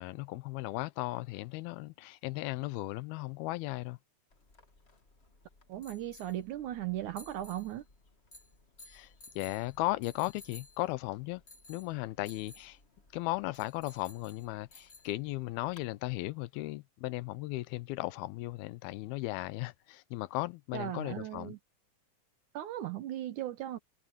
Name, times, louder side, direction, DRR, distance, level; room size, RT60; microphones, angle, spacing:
voice 1, 0.0-4.0 8.9-11.4 11.7-12.8 13.1-21.5, left 19 dB, 90° left, 2.6 m, -36 dB
sound 1, 4.3-15.9, left 2 dB, 25° left, 1.6 m, -57 dB
voice 2, 5.7-7.8 20.7-21.6 22.5-23.8, right 13 dB, 70° right, 2.1 m, -37 dB
omnidirectional pair, 4.3 m